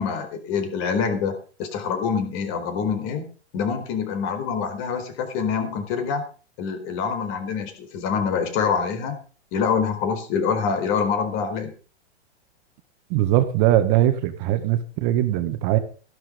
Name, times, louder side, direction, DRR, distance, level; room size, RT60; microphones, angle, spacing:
voice 1, 0.0-1.3 1.6-3.2 3.5-6.2 6.6-9.1 9.5-11.7, left 6 dB, 40° left, 8 dB, 4.3 m, -25 dB
voice 2, 13.1-15.8, right 13 dB, 40° right, 10 dB, 1.7 m, -20 dB
14.5 x 11.5 x 5.3 m, 0.38 s
hypercardioid pair, 140°, 33 cm